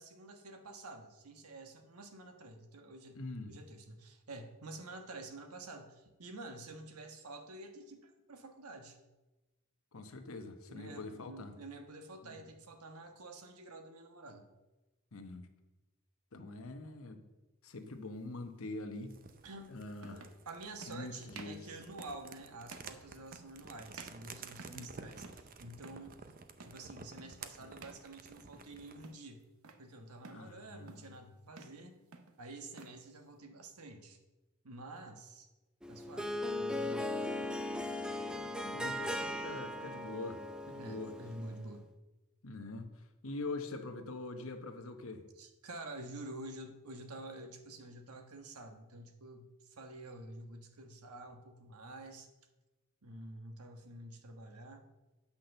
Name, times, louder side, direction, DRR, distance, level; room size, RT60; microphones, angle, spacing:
voice 1, 0.0-3.2 3.5-9.0 10.7-14.5 19.4-19.8 20.1-26.1 26.6-29.4 29.8-32.0 32.4-34.2 34.6-35.5 35.9-37.6 40.8-41.9 45.4-52.3 53.0-54.8, right 2 dB, 85° right, 5 dB, 1.3 m, -49 dB
voice 2, 3.1-3.5 9.9-11.5 12.2-12.5 15.1-15.5 16.3-17.2 17.6-19.2 19.7-20.3 20.9-21.7 24.7-24.9 27.6-27.7 30.3-31.2 38.3-41.1 42.4-45.3, left 2 dB, 65° left, 7 dB, 1.0 m, -44 dB
sound 1, 17.8-18.0 19.3-19.4 20.0-20.4 20.8-21.0 21.3-21.6 22.0-22.3 22.7-23.0 23.3-23.7 23.9-24.9 25.2-25.5 25.8-26.1 26.6-26.9 27.2-27.4 27.8-28.1 28.4-28.7 29.0-29.8 30.2-30.5 30.9-31.2 31.5-31.8 32.1-33.0, right 4 dB, 70° right, 0.9 m, -53 dB
sound 2, 19.1-29.1, right 5 dB, 40° right, 0.7 m, -52 dB
Harp, 35.8-41.6, left 1 dB, 5° right, 0.6 m, -38 dB
8.5 x 5.9 x 6.6 m, 1.1 s
head